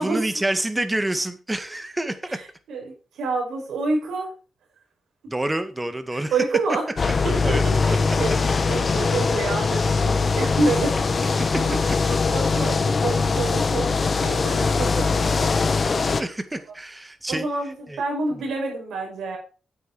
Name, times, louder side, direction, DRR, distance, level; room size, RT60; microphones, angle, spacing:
voice 1, 0.0-2.4 5.3-6.3 7.4-8.0 11.4-11.6 16.2-17.5 17.9-18.0, right 1 dB, 15° right, 10 dB, 1.9 m, -28 dB
voice 2, 2.3-4.3 6.1-6.9 7.2-11.0 11.3-13.9 14.2-15.8 17.3-19.4, right 3 dB, 80° right, 0 dB, 5.6 m, -28 dB
sound 1, 7.0-16.2, left 4 dB, 50° left, 1.4 m, -22 dB
9.7 x 8.1 x 4.9 m, 0.35 s
supercardioid pair, 55°, 0 cm